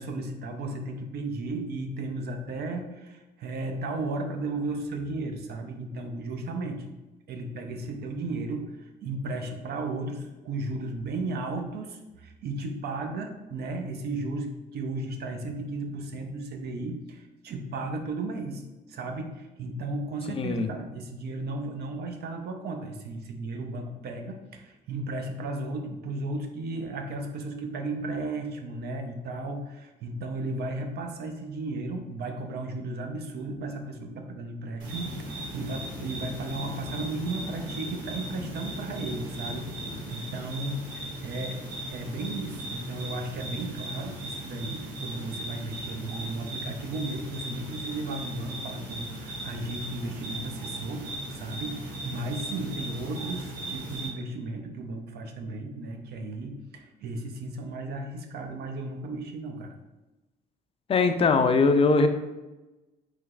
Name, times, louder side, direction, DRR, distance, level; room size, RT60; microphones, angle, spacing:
voice 1, 0.0-6.9 7.3-41.6 41.9-59.8, right 2 dB, 55° right, 4 dB, 0.5 m, -35 dB
sound 1, 34.8-54.1, right 1 dB, 80° right, 1.0 m, -38 dB
sound 2, 35.0-40.0, left 3 dB, 75° left, 0.6 m, -43 dB
voice 2, 60.9-62.1, left 4 dB, 30° left, 8 dB, 0.3 m, -21 dB
3.2 x 3.0 x 2.3 m, 1.1 s
supercardioid pair, 80°, 19 cm